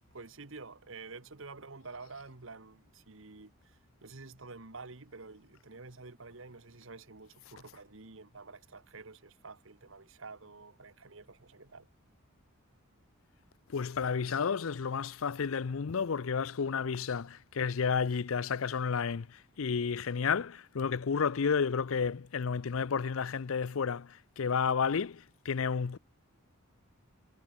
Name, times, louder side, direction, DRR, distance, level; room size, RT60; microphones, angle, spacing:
voice 1, 0.1-11.9, right 3 dB, 65° right, 1.4 m, -49 dB
voice 2, 13.7-26.0, left 6 dB, 70° left, 0.5 m, -31 dB
head